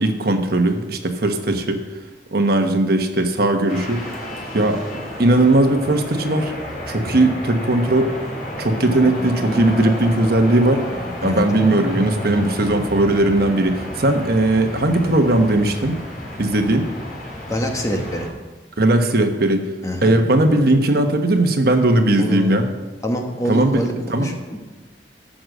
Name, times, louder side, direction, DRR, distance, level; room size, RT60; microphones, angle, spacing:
voice 1, 0.0-1.8 2.3-4.0 4.5-4.8 5.2-6.5 6.9-8.1 8.6-10.9 11.2-16.0 16.4-16.9 18.8-19.6 20.0-22.7 23.4-24.3, right 1 dB, 60° right, 5 dB, 1.2 m, -18 dB
sound 1, 3.7-18.3, equal, 50° left, 3.3 m, -31 dB
voice 2, 17.5-18.3 19.8-20.1 22.2-22.5 23.0-24.6, equal, 20° left, 2 dB, 1.4 m, -25 dB
14.5 x 6.4 x 6.5 m, 1.2 s
head